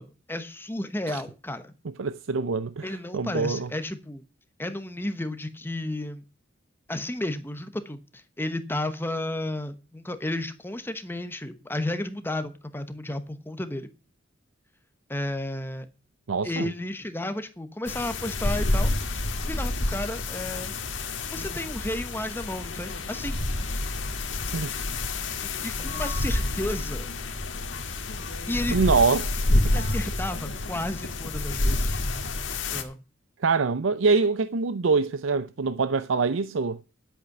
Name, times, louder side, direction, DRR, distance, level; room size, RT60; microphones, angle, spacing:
voice 1, 0.0-1.7 2.8-4.2 4.6-6.2 6.9-13.9 15.1-15.9 16.4-20.7 21.3-23.4 25.4-27.1 28.5-28.8 29.7-32.0 32.7-33.0, left 1 dB, 10° left, 1.1 m, -33 dB
voice 2, 2.0-3.7 16.3-16.7 24.5-24.8 28.7-29.7 33.4-36.8, right 4 dB, 80° right, 0.6 m, -25 dB
sound 1, 17.9-32.8, left 2 dB, 70° left, 1.9 m, -28 dB
11.0 x 8.2 x 6.0 m
head